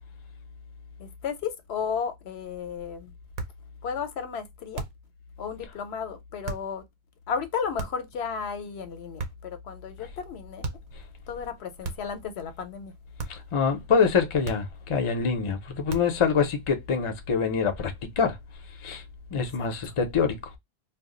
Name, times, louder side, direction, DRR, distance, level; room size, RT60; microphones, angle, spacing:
voice 1, 1.0-3.1 3.8-4.8 5.4-6.8 7.3-10.8 11.3-12.9 19.6-19.9, left 6 dB, 80° left, 0.8 m, -34 dB
sound 1, 3.3-3.7 4.7-5.1 6.4-6.7 7.8-8.2 9.2-9.6 10.6-11.0 11.8-12.2 13.2-13.5 14.4-14.9 15.9-16.3, right 3 dB, 55° right, 0.7 m, -36 dB
voice 2, 13.3-18.4 18.8-19.0 19.3-20.4, left 6 dB, 40° left, 0.5 m, -25 dB
2.3 x 2.1 x 3.6 m
omnidirectional pair, 1.1 m